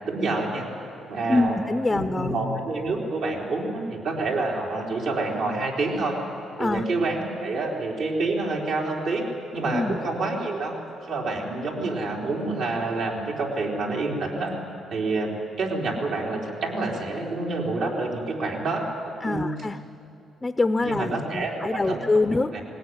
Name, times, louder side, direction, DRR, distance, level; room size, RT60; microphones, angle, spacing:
voice 1, 0.1-0.6 1.1-1.6 1.9-6.2 6.6-9.2 9.5-10.7 11.1-14.6 14.9-19.5 20.8-22.1 22.5-22.6, right 3 dB, 75° right, -2 dB, 4.2 m, -28 dB
voice 2, 1.3-2.4 6.6-6.9 9.7-10.0 19.2-19.8 20.4-22.6, left 2 dB, 20° left, 11 dB, 0.6 m, -25 dB
19.5 x 18.5 x 9.7 m, 2.7 s
cardioid pair, 90°, 0 cm